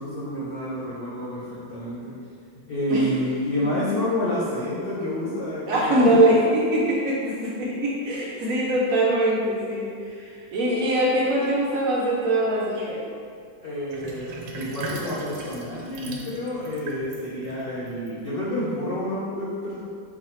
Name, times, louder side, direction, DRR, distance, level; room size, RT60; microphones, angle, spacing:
voice 1, 0.0-2.2 2.7-6.4 6.7-6.8 13.6-19.9, left 1 dB, 75° left, -8 dB, 0.5 m, -29 dB
voice 2, 5.7-13.0, right 1 dB, 60° right, -5 dB, 1.0 m, -22 dB
Sink (filling or washing), 13.9-18.6, right 2 dB, 80° right, 1.2 m, -38 dB
3.9 x 2.7 x 4.3 m, 2.3 s
omnidirectional pair, 1.9 m